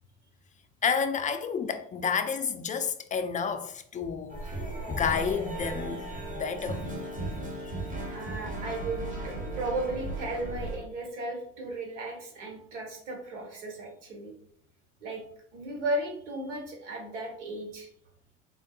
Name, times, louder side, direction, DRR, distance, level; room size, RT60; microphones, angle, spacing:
voice 1, 0.8-4.6 4.9-6.8, left 6 dB, 20° left, 0.4 m, -30 dB
sound 1, 4.3-10.8, right 1 dB, 20° right, 1.1 m, -36 dB
voice 2, 8.1-14.3 15.0-15.2 15.5-17.9, right 2 dB, 85° right, 1.1 m, -35 dB
3.6 x 3.6 x 2.3 m
hypercardioid pair, 65°, 35 cm